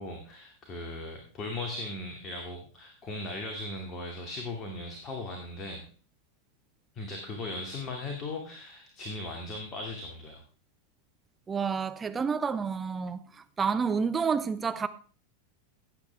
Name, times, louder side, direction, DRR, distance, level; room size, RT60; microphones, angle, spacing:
voice 1, 0.0-5.8 6.9-10.4, left 2 dB, 30° left, 2.3 m, -38 dB
voice 2, 11.5-13.2 13.6-14.9, right 5 dB, 15° right, 0.7 m, -29 dB
16.0 x 8.2 x 3.4 m
figure-of-eight pair, 90°, 0 cm